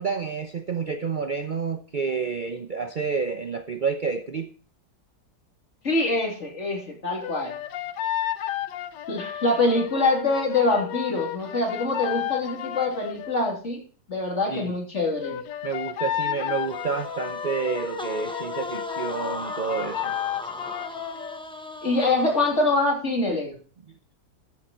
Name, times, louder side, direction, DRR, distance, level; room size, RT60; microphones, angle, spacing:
voice 1, 0.0-4.5 14.5-14.7 15.6-20.1, right 5 dB, 75° right, 0.4 m, -29 dB
voice 2, 5.8-7.6 9.1-13.8 14.1-15.4 21.8-23.6, left 2 dB, 40° left, 3.3 m, -24 dB
sound 1, 7.2-13.4 15.2-21.4, left 12 dB, 75° left, 1.4 m, -32 dB
sound 2, 16.5-22.8, left 1 dB, 5° left, 0.3 m, -37 dB
13.0 x 6.9 x 4.3 m
omnidirectional pair, 1.9 m